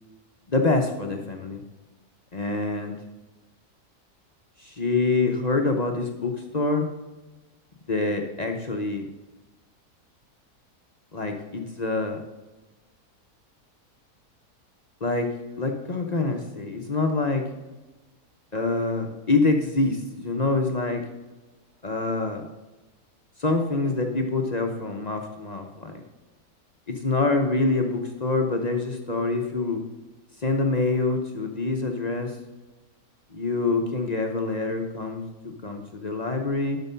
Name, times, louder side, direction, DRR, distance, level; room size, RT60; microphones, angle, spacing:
voice 1, 0.5-1.6 2.3-3.0 4.6-6.9 7.9-9.1 11.1-12.2 15.0-15.3 15.6-17.4 18.5-21.0 21.8-22.4 23.4-26.0 26.9-29.8 30.4-32.3 33.3-36.8, left 3 dB, 40° left, 3 dB, 0.7 m, -26 dB
12.0 x 4.5 x 5.6 m, 1.1 s
omnidirectional pair, 1.6 m